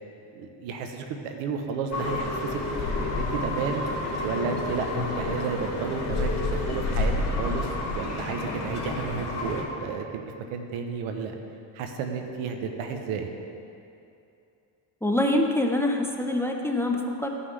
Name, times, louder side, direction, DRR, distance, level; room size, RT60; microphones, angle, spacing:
voice 1, 0.3-2.6 2.9-3.9 4.2-11.4 11.7-13.3, right 5 dB, 90° right, 5 dB, 1.0 m, -32 dB
sound 1, 1.9-9.6, left 2 dB, 35° left, 2.3 m, -29 dB
voice 2, 15.0-17.3, left 1 dB, 5° left, 2 dB, 0.7 m, -25 dB
14.5 x 5.7 x 3.3 m, 2.7 s
cardioid pair, 95°, 48 cm